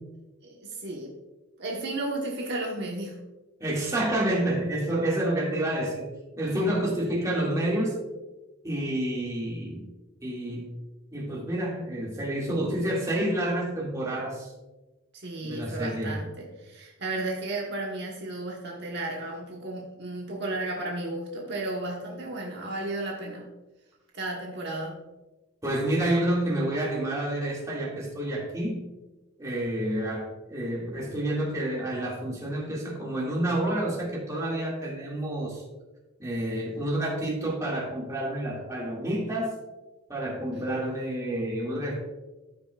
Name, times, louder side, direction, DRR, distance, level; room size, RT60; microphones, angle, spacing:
voice 1, 0.4-1.2 1.6-3.2 15.1-23.5 24.1-25.0 40.5-40.7, right 2 dB, 55° right, -2 dB, 1.2 m, -34 dB
voice 2, 3.6-6.1 6.4-8.0 8.6-9.9 10.2-10.7 11.1-14.5 15.4-16.2 25.6-28.9 29.4-35.6 36.2-39.5 40.1-42.0, right 1 dB, 15° right, -4 dB, 2.1 m, -29 dB
14.0 x 5.7 x 2.4 m, 1.1 s
head